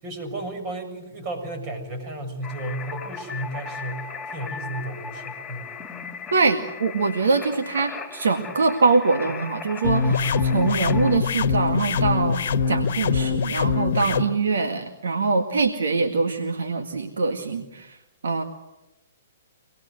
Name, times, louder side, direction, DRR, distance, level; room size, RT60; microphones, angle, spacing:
voice 1, 0.0-5.7 10.0-10.6 12.7-13.1 14.0-14.1, right 1 dB, 35° right, 6 dB, 7.1 m, -33 dB
sound 1, 2.4-11.2, left 4 dB, 10° left, 3.1 m, -37 dB
voice 2, 6.3-10.1 10.5-12.4 12.7-18.0 18.2-18.4, right 4 dB, 75° right, 5 dB, 1.9 m, -23 dB
sound 2, 9.8-14.2, left 5 dB, 60° left, 1.3 m, -23 dB
25.5 x 20.0 x 7.9 m, 0.98 s
hypercardioid pair, 125°, 0 cm